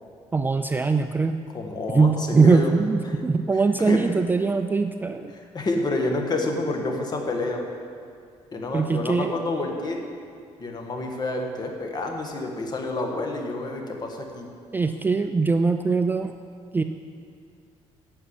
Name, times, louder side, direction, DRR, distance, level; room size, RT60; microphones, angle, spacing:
voice 1, 0.3-1.4 1.9-5.3 8.7-9.4 14.7-16.3 16.7-16.8, right 4 dB, 15° right, 8 dB, 0.4 m, -21 dB
voice 2, 1.5-2.7 3.5-4.0 5.3-7.7 8.5-10.0 10.6-14.5, left 2 dB, 35° left, 2 dB, 1.7 m, -29 dB
9.9 x 7.1 x 8.6 m, 2.3 s
cardioid pair, 120°, 12 cm